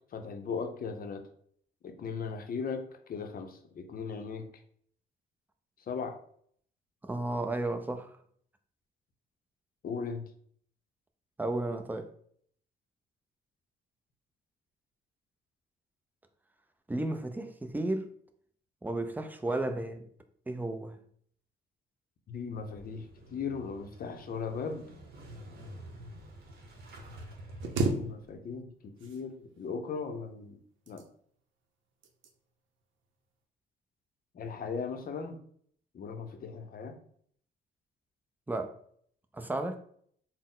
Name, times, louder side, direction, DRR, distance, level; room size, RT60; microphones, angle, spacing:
voice 1, 0.1-1.2 1.8-4.5 5.8-6.2 9.8-10.3 19.5-19.6 22.3-24.9 27.7-30.6 30.9-31.1 34.3-35.4 35.9-37.0, left 5 dB, 45° left, 0.6 m, -38 dB
voice 2, 7.0-8.1 11.4-12.1 16.9-18.1 18.8-20.0 20.5-20.9 38.5-38.8 39.3-39.8, right 2 dB, 10° right, 0.5 m, -33 dB
Motorcycle / Engine starting, 22.5-28.4, right 1 dB, 55° right, 0.9 m, -49 dB
sound 1, 27.6-28.7 29.0-29.7 30.6-31.4 32.0-32.4 32.8-33.0, right 3 dB, 75° right, 0.6 m, -34 dB
4.0 x 2.1 x 3.7 m
cardioid pair, 90°, 20 cm